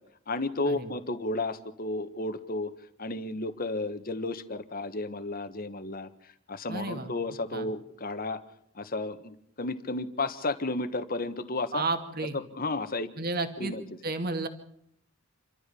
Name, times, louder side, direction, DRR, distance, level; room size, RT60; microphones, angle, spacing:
voice 1, 0.3-2.7 3.0-6.1 6.5-8.4 8.7-11.8 12.3-13.1 13.6-13.8, left 2 dB, 45° left, 10 dB, 1.5 m, -32 dB
voice 2, 6.7-7.1 7.5-7.7 11.7-12.4 13.2-13.7 14.0-14.5, right 3 dB, 50° right, 7 dB, 2.4 m, -32 dB
28.0 x 13.5 x 7.0 m, 0.70 s
head